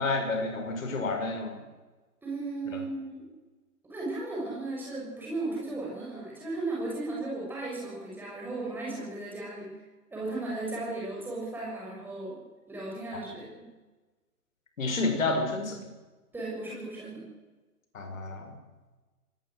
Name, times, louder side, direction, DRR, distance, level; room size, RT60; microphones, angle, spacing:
voice 1, 0.0-1.5 13.1-13.2 14.8-15.8 17.9-18.5, left 3 dB, 55° left, 5 dB, 6.2 m, -30 dB
voice 2, 2.2-3.2 3.8-9.7 10.1-12.4 12.7-13.7 16.3-17.2, right 2 dB, 5° right, -5 dB, 6.5 m, -35 dB
24.0 x 19.5 x 6.6 m, 1.2 s
figure-of-eight pair, 140°, 47 cm